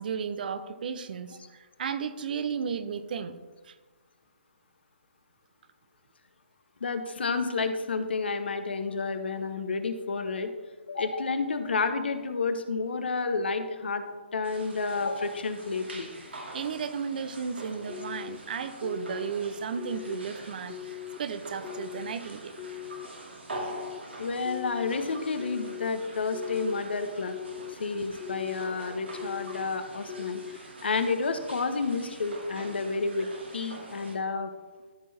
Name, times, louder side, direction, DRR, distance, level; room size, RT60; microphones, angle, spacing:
voice 1, 0.0-3.4 3.7-3.8 16.5-22.5, right 6 dB, 55° right, 12 dB, 0.7 m, -34 dB
voice 2, 6.8-10.5 10.9-14.0 14.3-16.1 24.2-27.3 27.7-33.3 33.5-34.5, left 4 dB, 70° left, 9 dB, 1.1 m, -30 dB
sound 1, 14.4-34.2, right 1 dB, 80° right, 2.3 m, -45 dB
sound 2, 17.9-18.4 18.8-19.3 19.8-20.2 20.7-21.2 21.6-22.1 22.6-23.1 23.5-24.0 24.4-24.9 25.4-25.9 26.3-26.8 27.3-27.7 28.2-28.7 29.1-29.6 30.1-30.6, left 13 dB, 25° left, 1.0 m, -40 dB
13.5 x 4.7 x 4.2 m, 1.3 s
figure-of-eight pair, 140°, 6 cm